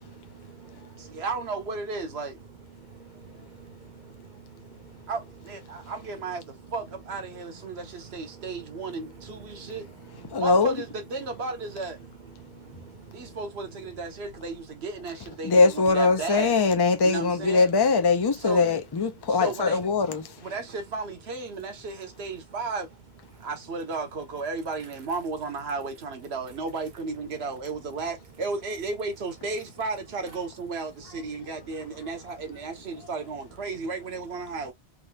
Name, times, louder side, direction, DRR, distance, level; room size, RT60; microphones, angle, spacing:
voice 1, 0.1-1.2 2.8-5.1 5.7-5.9 8.3-8.5 9.4-9.7 10.3-10.4 12.4-13.4, right 6 dB, 50° right, 0.8 m, -49 dB
voice 2, 1.0-2.4 5.1-9.9 10.4-12.0 13.1-16.6 17.0-17.7 18.3-18.7 19.3-19.8 20.4-22.9 23.4-34.7, right 4 dB, 70° right, 1.2 m, -34 dB
voice 3, 10.3-10.7 15.4-20.2, left 4 dB, 30° left, 0.5 m, -21 dB
3.7 x 2.6 x 2.2 m
omnidirectional pair, 1.1 m